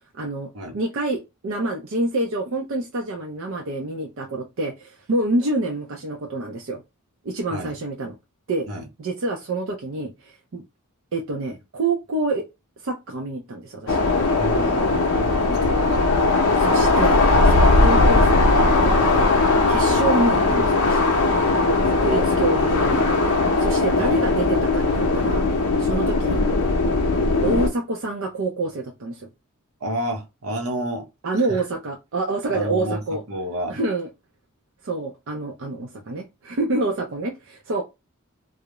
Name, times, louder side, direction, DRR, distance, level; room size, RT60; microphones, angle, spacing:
voice 1, 0.1-0.5 0.7-6.8 7.2-8.1 8.5-8.7 9.0-10.6 11.1-12.5 12.8-14.0 16.6-19.2 19.7-21.1 21.9-23.0 23.6-25.4 25.8-26.4 27.4-29.3 31.2-33.2 33.7-34.1 34.8-37.8, right 2 dB, 65° right, 0.5 m, -27 dB
sound 1, 13.9-27.7, left 3 dB, 85° left, 0.6 m, -19 dB
voice 2, 14.3-16.2 21.8-22.5 24.0-24.2 29.8-31.1 31.4-31.6 32.5-33.8, equal, 85° right, 0.8 m, -31 dB
2.3 x 2.0 x 2.8 m
head